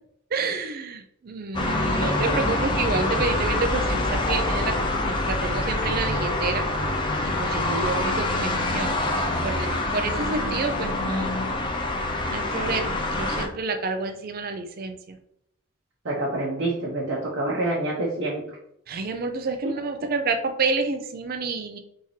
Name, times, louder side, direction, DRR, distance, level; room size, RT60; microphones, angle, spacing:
voice 1, 0.3-6.7 7.2-11.4 12.3-15.2 18.9-21.8, right 3 dB, 45° right, 7 dB, 0.4 m, -29 dB
sound 1, 1.5-13.5, left 2 dB, 20° left, 0.5 m, -25 dB
voice 2, 16.0-18.6, right 2 dB, 60° right, -5 dB, 0.9 m, -27 dB
4.1 x 3.6 x 3.2 m, 0.75 s
head